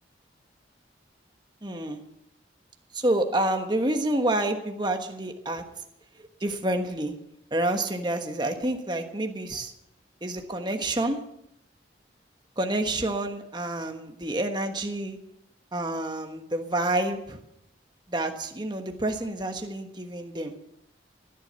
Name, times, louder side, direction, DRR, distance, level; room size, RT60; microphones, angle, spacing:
voice 1, 1.6-2.0 2.9-5.6 6.2-7.1 7.5-9.7 10.2-11.2 12.6-15.2 15.7-17.4 18.1-20.5, right 1 dB, 25° right, 5 dB, 1.3 m, -28 dB
16.0 x 10.5 x 6.9 m, 0.80 s
head